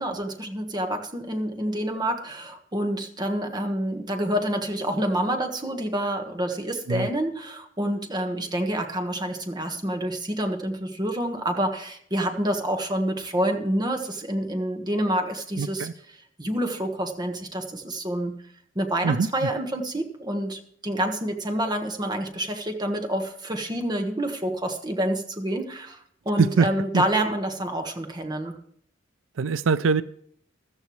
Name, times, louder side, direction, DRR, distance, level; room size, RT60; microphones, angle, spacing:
voice 1, 0.0-15.9 16.4-18.3 18.7-28.6, right 1 dB, 20° right, 4 dB, 1.5 m, -28 dB
voice 2, 15.6-15.9 19.0-19.3 26.4-26.7 26.9-27.0 29.4-30.0, right 5 dB, 90° right, 15 dB, 0.5 m, -22 dB
14.0 x 13.5 x 3.2 m, 0.64 s
head